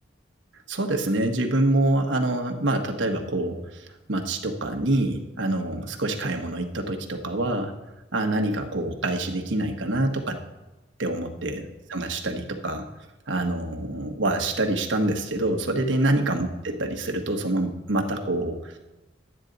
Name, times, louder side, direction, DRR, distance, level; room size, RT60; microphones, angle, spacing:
voice 1, 0.7-7.7 8.1-10.4 11.0-11.6 11.9-12.9 13.3-18.8, right 2 dB, 80° right, 4 dB, 1.3 m, -26 dB
12.0 x 9.0 x 4.0 m, 1.1 s
head